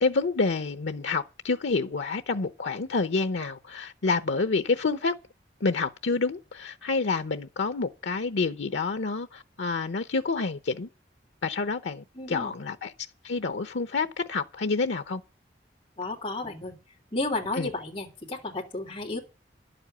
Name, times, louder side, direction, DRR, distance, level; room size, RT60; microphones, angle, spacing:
voice 1, 0.0-5.1 5.6-10.9 11.4-12.9 13.2-15.2 17.6-17.7, left 4 dB, 90° left, 0.7 m, -28 dB
voice 2, 12.1-12.5 16.0-16.7 17.1-19.2, left 2 dB, 30° left, 3.1 m, -32 dB
11.0 x 7.9 x 8.8 m
head